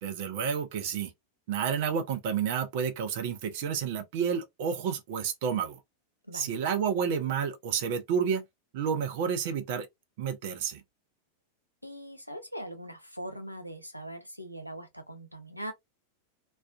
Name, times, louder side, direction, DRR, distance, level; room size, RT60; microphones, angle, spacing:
voice 1, 0.0-1.1 1.5-5.8 6.3-8.4 8.7-9.9 10.2-10.8, right 7 dB, 50° right, 0.6 m, -30 dB
voice 2, 11.8-15.7, right 1 dB, 90° left, 0.5 m, -41 dB
2.4 x 2.2 x 2.3 m
figure-of-eight pair, 90°, 0 cm